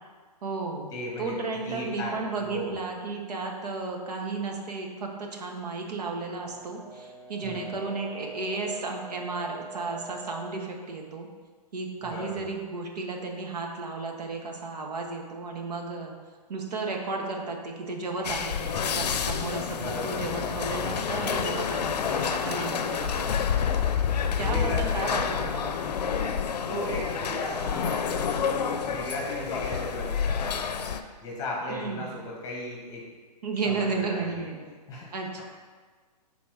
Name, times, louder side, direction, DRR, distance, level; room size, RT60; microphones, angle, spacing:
voice 1, 0.4-0.9 1.2-11.3 11.7-16.1 16.5-23.4 24.4-25.8 31.7-32.1 33.4-34.6 35.1-35.4, right 3 dB, 70° right, 1 dB, 1.2 m, -33 dB
voice 2, 0.9-1.3 1.6-2.8 7.4-7.7 12.0-12.5 19.7-20.5 21.2-21.5 24.4-25.5 26.7-30.9 31.2-33.1 33.6-34.4 34.9-35.1, left 1 dB, 15° left, -3 dB, 1.4 m, -36 dB
Brass instrument, 6.4-10.6, right 2 dB, 10° right, 1.6 m, -44 dB
sound 1, 18.2-31.0, left 7 dB, 75° left, 0.5 m, -28 dB
6.0 x 4.0 x 4.8 m, 1.5 s
hypercardioid pair, 155°, 21 cm